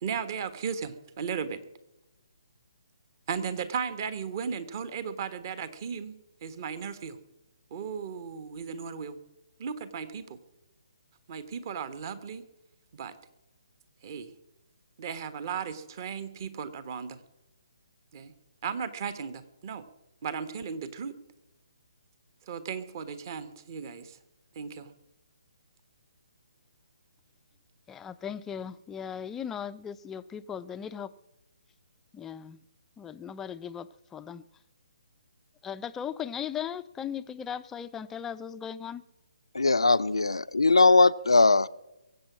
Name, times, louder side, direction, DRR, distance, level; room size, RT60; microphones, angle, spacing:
voice 1, 0.0-1.6 3.3-7.2 7.7-9.2 9.6-10.4 11.3-12.4 12.9-13.1 14.0-14.3 15.0-17.2 18.1-18.3 18.6-19.8 20.2-21.1 22.5-24.2 24.5-24.9, right 6 dB, 40° right, 1.4 m, -36 dB
voice 2, 27.9-31.1 32.1-32.6 33.0-34.4 35.6-39.0, left 8 dB, 10° left, 0.5 m, -37 dB
voice 3, 39.5-41.7, left 3 dB, 75° left, 0.6 m, -20 dB
22.0 x 8.4 x 6.1 m
figure-of-eight pair, 140°, 3 cm